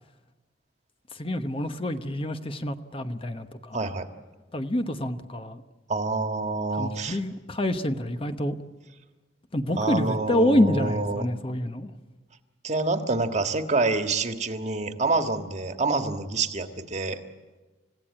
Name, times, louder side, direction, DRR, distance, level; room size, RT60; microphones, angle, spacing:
voice 1, 1.2-3.8 4.5-5.6 6.7-8.6 9.5-11.9, left 1 dB, 30° left, 8 dB, 1.0 m, -27 dB
voice 2, 3.7-4.1 5.9-7.2 9.8-11.3 12.6-17.2, right 3 dB, 40° right, 7 dB, 1.6 m, -27 dB
29.5 x 16.5 x 8.8 m, 1.3 s
head